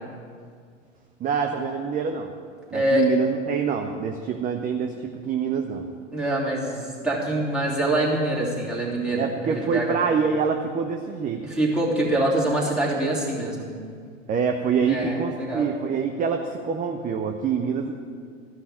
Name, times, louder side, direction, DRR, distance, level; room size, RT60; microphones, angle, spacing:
voice 1, 1.2-2.3 2.7-5.8 9.1-11.4 14.3-17.9, right 6 dB, 20° right, 5 dB, 0.7 m, -26 dB
voice 2, 2.7-3.1 6.1-10.0 11.4-13.7 14.8-15.7, right 1 dB, ahead, -6 dB, 3.1 m, -25 dB
13.5 x 5.7 x 8.7 m, 2.1 s
figure-of-eight pair, 90°, 37 cm